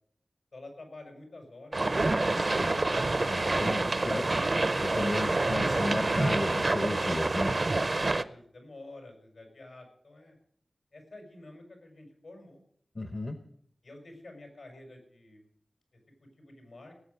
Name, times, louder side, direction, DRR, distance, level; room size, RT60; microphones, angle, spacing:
voice 1, 0.5-2.8 8.1-10.4 10.9-12.6 13.0-13.1 13.8-15.5 16.4-16.9, left 2 dB, 80° left, 3 dB, 5.3 m, -49 dB
sound 1, 1.7-8.2, right 2 dB, 40° right, 0.6 m, -27 dB
voice 2, 2.4-2.8 3.3-4.5 4.8-7.5 13.0-13.4, left 2 dB, 40° left, 8 dB, 0.9 m, -34 dB
18.0 x 7.9 x 6.8 m, 0.65 s
wide cardioid pair, 95°, 0 cm